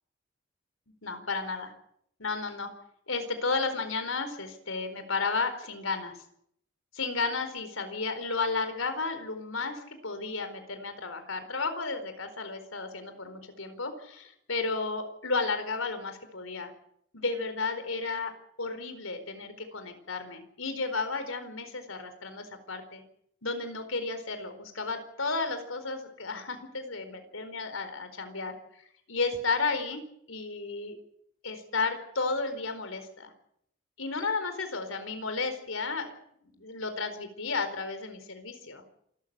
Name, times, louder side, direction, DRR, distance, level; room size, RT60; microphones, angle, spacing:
voice 1, 1.0-1.7 2.2-2.7 3.1-6.2 6.9-16.7 17.1-18.3 18.6-23.0 23.4-28.5 29.1-30.0 30.3-31.0 31.4-33.3 34.0-36.1 36.4-38.8, left 4 dB, 90° left, 8 dB, 4.5 m, -33 dB
27.0 x 14.0 x 8.9 m, 0.71 s
head